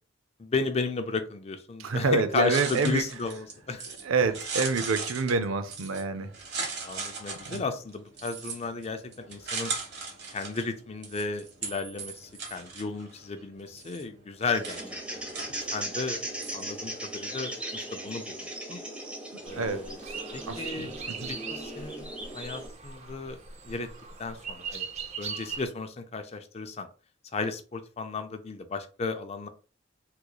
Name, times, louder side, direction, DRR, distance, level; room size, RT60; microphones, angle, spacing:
voice 1, 0.4-3.9 6.8-9.7 10.3-14.8 15.4-16.2 16.5-18.8 19.4-20.0 20.3-21.0 21.3-22.1 22.3-23.4 23.7-23.9 24.2-24.8 25.2-26.9 27.3-29.5, left 4 dB, 30° left, 0.4 m, -34 dB
voice 2, 1.8-3.0 4.0-6.3 7.5-7.6 19.3-20.2 20.5-20.9 21.2-21.3, right 4 dB, 85° right, 0.5 m, -27 dB
sound 1, 2.5-17.0, right 4 dB, 55° right, 1.0 m, -39 dB
sound 2, 14.4-22.7, right 1 dB, 5° right, 0.8 m, -38 dB
sound 3, 19.4-25.6, right 5 dB, 35° right, 0.5 m, -40 dB
3.8 x 3.1 x 2.2 m
head